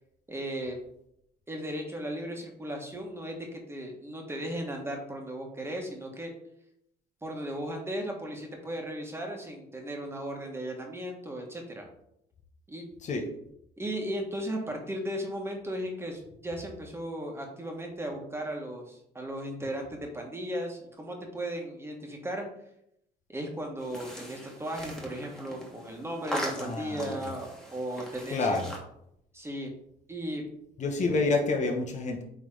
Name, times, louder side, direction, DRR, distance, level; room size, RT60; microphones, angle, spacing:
voice 1, 0.3-0.8 1.5-6.3 7.2-11.8 12.7-12.9 13.8-22.4 23.3-28.6 29.3-29.7 30.1-30.4, right 1 dB, 15° right, 1 dB, 1.5 m, -36 dB
sound 1, 23.8-28.8, equal, 5° left, 1.7 m, -40 dB
voice 2, 26.6-27.3 28.3-28.7 30.8-32.2, left 3 dB, 45° left, 3 dB, 1.1 m, -28 dB
8.8 x 3.4 x 3.8 m, 0.75 s
cardioid pair, 110°, 17 cm